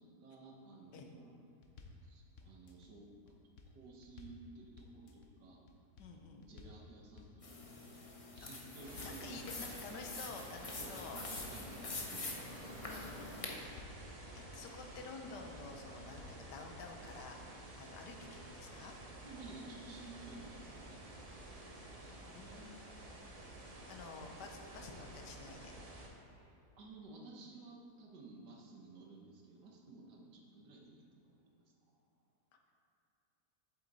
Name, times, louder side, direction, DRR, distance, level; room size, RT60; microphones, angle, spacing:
voice 1, 0.0-1.3 2.0-3.3 3.7-5.6 6.2-8.1 8.3-9.6 10.8-13.1 19.2-21.0 22.0-22.3 26.4-26.5 26.8-31.4, right 3 dB, 75° right, 0 dB, 1.7 m, -54 dB
sound 1, 1.6-2.0 2.4-2.9 3.3-4.4 4.8-5.3 5.7-6.1 6.4-6.8 7.2-7.7 8.1-9.2 9.6-10.1 10.5-11.6 12.0-12.5 12.9-14.0 14.4-14.9 15.3-15.7 16.0-16.4 16.8-17.3, left 4 dB, 55° left, 1.0 m, -56 dB
voice 2, 6.0-6.5 8.4-8.5 9.0-11.2 12.8-13.2 14.3-18.9 22.3-22.8 23.9-25.8, left 4 dB, 80° left, 3 dB, 1.4 m, -50 dB
sound 2, 7.4-13.6, left 3 dB, 35° left, 0.6 m, -46 dB
sound 3, 8.8-26.1, right 1 dB, 30° right, 0.7 m, -52 dB
8.1 x 7.8 x 4.0 m, 2.8 s
omnidirectional pair, 1.8 m